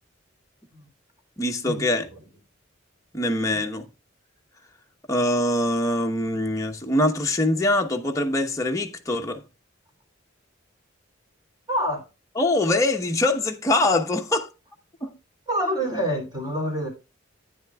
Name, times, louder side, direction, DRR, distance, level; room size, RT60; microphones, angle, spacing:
voice 1, 1.4-2.0 3.1-3.8 5.1-9.4 12.4-14.5 15.0-15.1, left 1 dB, 15° left, 1.0 m, -23 dB
voice 2, 11.7-12.0 15.5-16.9, equal, 20° right, 3.0 m, -26 dB
11.0 x 9.4 x 2.3 m
head